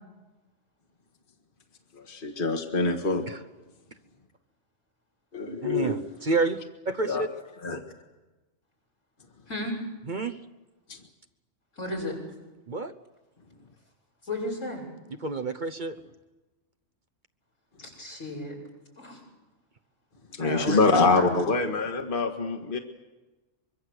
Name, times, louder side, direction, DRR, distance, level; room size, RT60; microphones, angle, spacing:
voice 1, 2.1-3.2 5.3-6.0 7.1-7.3 7.6-7.8 10.9-11.0 20.3-22.8, left 3 dB, 45° left, 4 dB, 1.9 m, -25 dB
voice 2, 5.6-7.3 10.1-10.4 12.7-12.9 15.2-16.0, right 3 dB, 40° right, 10 dB, 1.0 m, -29 dB
voice 3, 11.8-12.2 14.2-14.8 17.8-18.5 19.0-19.2 20.4-21.4, left 1 dB, 85° left, -1 dB, 7.2 m, -33 dB
24.0 x 23.5 x 8.0 m, 1.1 s
omnidirectional pair, 1.3 m